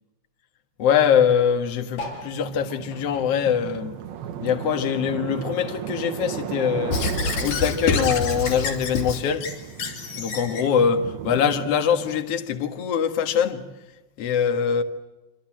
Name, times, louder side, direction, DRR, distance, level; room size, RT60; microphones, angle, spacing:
voice 1, 0.8-4.0 4.4-7.0 7.4-9.5 10.2-13.7 14.2-14.8, left 7 dB, 50° left, 2.3 m, -23 dB
sound 1, 1.9-4.7 5.0-6.5 7.0-7.1 7.3-7.4 7.6-8.0 8.8-8.9, left 2 dB, 65° left, 6.0 m, -41 dB
sound 2, 2.0-12.2, right 9 dB, 85° right, 3.1 m, -36 dB
Squeak / Writing, 6.9-10.7, left 4 dB, 85° left, 5.2 m, -27 dB
26.5 x 25.5 x 7.6 m
omnidirectional pair, 4.3 m